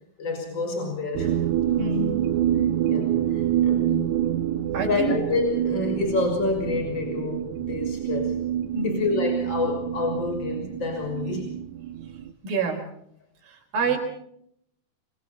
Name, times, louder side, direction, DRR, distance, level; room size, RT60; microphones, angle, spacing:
voice 1, 0.2-1.3 2.9-4.2 4.8-8.4 8.8-11.6, left 3 dB, 30° left, 4 dB, 6.8 m, -28 dB
sound 1, 1.1-12.3, right 11 dB, 60° right, 2.5 m, -27 dB
voice 2, 1.8-2.3 4.7-5.2 8.7-9.1 12.4-12.9 13.4-14.0, right 3 dB, 80° right, 2 dB, 6.0 m, -27 dB
26.0 x 26.0 x 4.3 m, 0.71 s
omnidirectional pair, 4.1 m